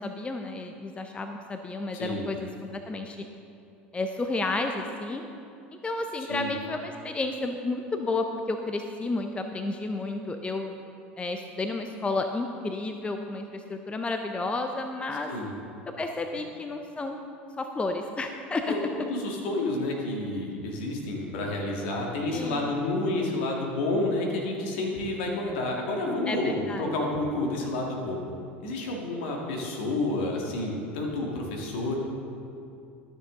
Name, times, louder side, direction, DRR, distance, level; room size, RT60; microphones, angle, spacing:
voice 1, 0.0-3.2 3.9-5.3 5.8-10.8 11.2-15.3 16.0-17.2 17.6-18.7 22.3-22.7 26.3-26.9, left 2 dB, 15° left, 5 dB, 0.6 m, -31 dB
voice 2, 1.9-2.3 6.2-6.5 15.3-15.5 18.7-28.2 28.6-32.0, left 2 dB, 65° left, 0 dB, 1.8 m, -30 dB
13.0 x 6.8 x 3.7 m, 2.6 s
hypercardioid pair, 75°, 6 cm